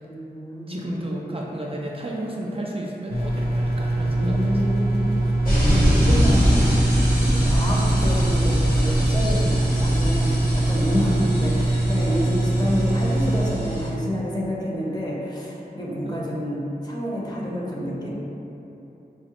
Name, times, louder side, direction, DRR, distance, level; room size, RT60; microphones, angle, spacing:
voice 1, 0.0-1.4 4.1-6.7 7.3-18.1, equal, 25° left, -5 dB, 0.7 m, -28 dB
voice 2, 0.7-4.6 16.0-16.2, right 1 dB, 35° right, -3 dB, 0.4 m, -32 dB
sound 1, 3.1-13.5, right 2 dB, 75° left, 0.6 m, -23 dB
sound 2, 5.5-13.9, equal, 60° left, 1.2 m, -24 dB
4.6 x 2.0 x 2.9 m, 2.9 s
wide cardioid pair, 50°, 17 cm